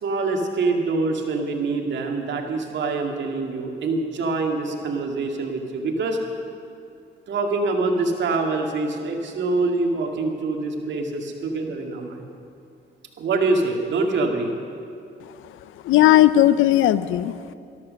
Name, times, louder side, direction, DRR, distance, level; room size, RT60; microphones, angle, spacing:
voice 1, 0.0-6.2 7.3-12.3 13.2-14.5, right 3 dB, 65° right, 2 dB, 2.1 m, -25 dB
voice 2, 15.2-17.5, left 13 dB, 80° left, 15 dB, 0.6 m, -18 dB
13.0 x 13.0 x 6.5 m, 2.5 s
cardioid pair, 90°, 20 cm